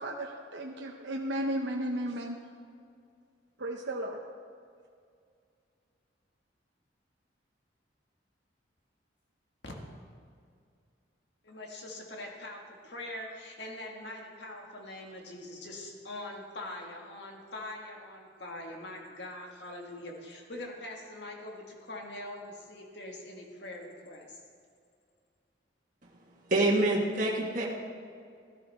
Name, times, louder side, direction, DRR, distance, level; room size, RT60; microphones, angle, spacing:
voice 1, 0.0-2.4 3.6-4.2, right 1 dB, 70° right, 1 dB, 0.8 m, -34 dB
voice 2, 11.4-24.4, left 1 dB, 65° left, 0 dB, 1.9 m, -43 dB
voice 3, 26.5-27.7, right 2 dB, 45° right, -3 dB, 1.6 m, -26 dB
14.0 x 12.5 x 3.6 m, 2.3 s
head